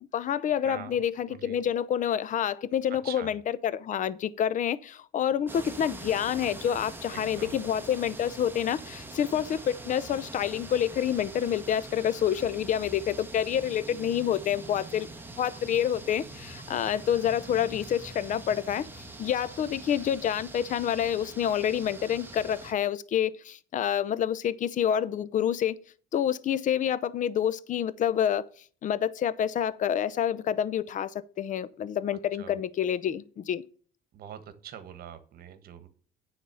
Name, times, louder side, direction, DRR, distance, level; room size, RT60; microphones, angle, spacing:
voice 1, 0.1-15.1 15.4-18.9 19.2-25.8 26.1-28.5 28.8-33.6, left 9 dB, 50° left, 0.6 m, -28 dB
voice 2, 0.6-1.6 2.9-3.3 7.1-7.6 32.4-32.6 34.1-35.9, right 9 dB, 65° right, 1.4 m, -44 dB
sound 1, 5.5-22.7, right 2 dB, 10° right, 1.5 m, -44 dB
9.5 x 4.1 x 6.9 m
cardioid pair, 110°, 17 cm